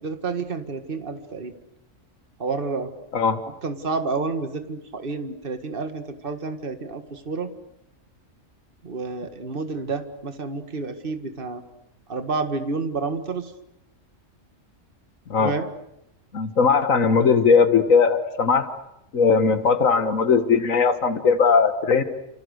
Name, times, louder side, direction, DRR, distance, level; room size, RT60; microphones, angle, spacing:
voice 1, 0.0-1.6 2.4-2.9 3.6-7.5 8.8-11.6 12.1-13.5 15.4-15.7, right 4 dB, 45° right, 8 dB, 2.1 m, -29 dB
voice 2, 16.3-18.7 19.1-22.0, left 5 dB, 90° left, 9 dB, 1.9 m, -19 dB
30.0 x 28.5 x 6.7 m, 0.82 s
omnidirectional pair, 1.3 m